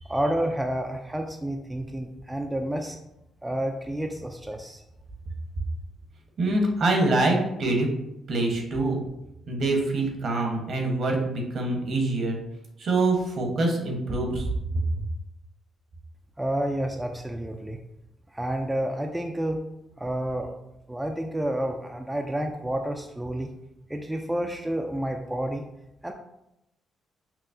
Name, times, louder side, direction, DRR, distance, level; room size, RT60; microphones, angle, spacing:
voice 1, 0.0-3.0 3.4-4.8 16.4-17.8 18.3-19.6 20.0-20.5 20.9-23.5 23.9-25.6 26.0-26.1, right 1 dB, 10° right, 3 dB, 0.3 m, -29 dB
voice 2, 6.4-7.9 8.3-9.0 9.5-12.4 12.8-14.5, right 2 dB, 60° right, 1 dB, 0.9 m, -25 dB
5.8 x 2.0 x 2.6 m, 0.86 s
cardioid pair, 90°, 0 cm